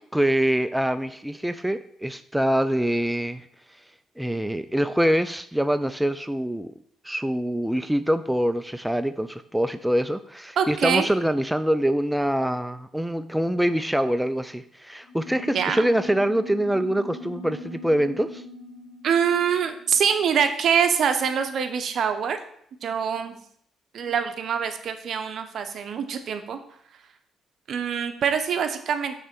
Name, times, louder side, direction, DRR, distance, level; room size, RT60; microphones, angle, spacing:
voice 1, 0.1-3.8 4.2-6.7 7.0-18.4, equal, 5° right, 10 dB, 0.3 m, -24 dB
voice 2, 10.6-11.1 15.5-15.8 19.0-22.4 22.8-23.4 23.9-26.6 27.7-29.2, right 7 dB, 65° right, 8 dB, 0.8 m, -24 dB
sound 1, 15.0-21.0, left 1 dB, 70° left, 2.0 m, -41 dB
6.6 x 3.2 x 6.0 m, 0.65 s
cardioid pair, 90°, 0 cm